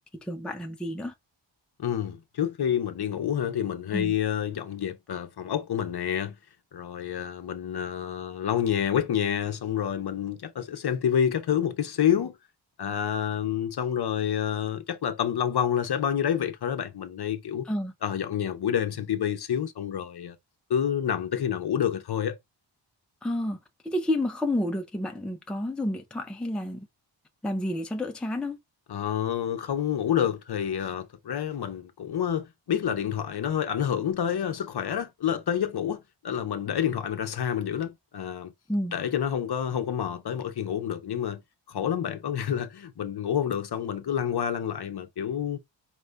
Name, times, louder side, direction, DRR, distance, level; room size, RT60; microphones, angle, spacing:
voice 1, 0.2-1.1 3.9-4.1 17.6-17.9 23.2-23.6 23.8-26.9 27.4-28.6 38.7-39.0, left 1 dB, ahead, 0.5 m, -30 dB
voice 2, 1.8-6.4 6.7-12.4 12.8-17.7 18.0-20.4 20.7-22.4 28.9-38.5 38.9-41.4 41.7-45.6, left 9 dB, 55° left, 0.7 m, -28 dB
4.4 x 2.6 x 3.2 m
wide cardioid pair, 135°, 47 cm